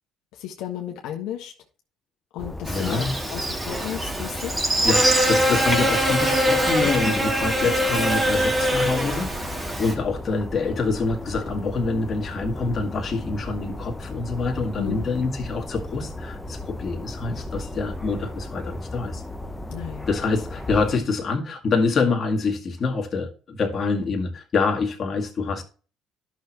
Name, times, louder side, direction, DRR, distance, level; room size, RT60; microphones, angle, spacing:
voice 1, 0.3-1.5 2.3-4.6 7.0-7.1 14.8-15.0 19.7-20.1, left 11 dB, 80° left, 1.4 m, -33 dB
sound 1, 2.4-21.0, left 1 dB, 10° left, 0.9 m, -35 dB
voice 2, 2.7-3.1 4.8-19.2 20.1-25.6, left 4 dB, 40° left, 2.0 m, -26 dB
Buzz, 2.7-9.9, equal, 20° right, 2.4 m, -23 dB
11.5 x 6.3 x 3.0 m
supercardioid pair, 85°, 0 cm